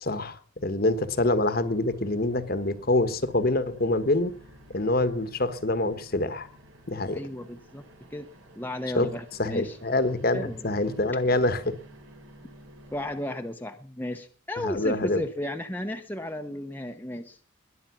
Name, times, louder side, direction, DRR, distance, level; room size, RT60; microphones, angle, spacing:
voice 1, 0.0-4.3 4.7-6.5 6.9-7.2 8.9-9.1 9.4-11.7 14.6-15.2, left 2 dB, 45° left, 1.3 m, -25 dB
sound 1, 0.8-13.2, equal, 70° right, 3.3 m, -52 dB
voice 2, 7.1-8.3 8.5-9.8 10.3-10.7 12.9-17.4, left 1 dB, 10° left, 0.8 m, -34 dB
21.0 x 9.0 x 6.0 m
head